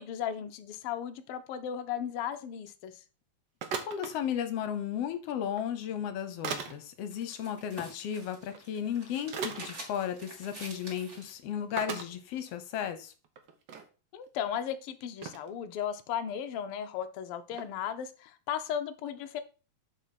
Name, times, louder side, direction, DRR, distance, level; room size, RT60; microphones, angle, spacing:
voice 1, 0.0-2.9 14.1-19.4, left 9 dB, 90° left, 8 dB, 1.2 m, -36 dB
sound 1, 3.6-4.1 5.5-5.6 6.4-6.8 8.5-8.6 9.3-9.7 10.6-10.7 11.0-11.1 11.8-12.1 12.8-12.9 13.2-13.8 14.5-14.6 15.2-15.5 17.5-17.6, right 6 dB, 75° right, 1.0 m, -37 dB
voice 2, 3.9-13.1, left 9 dB, 70° left, 10 dB, 1.6 m, -34 dB
sound 2, 6.8-11.4, right 1 dB, 25° right, 2.6 m, -48 dB
7.1 x 4.1 x 5.8 m, 0.34 s
omnidirectional pair, 3.4 m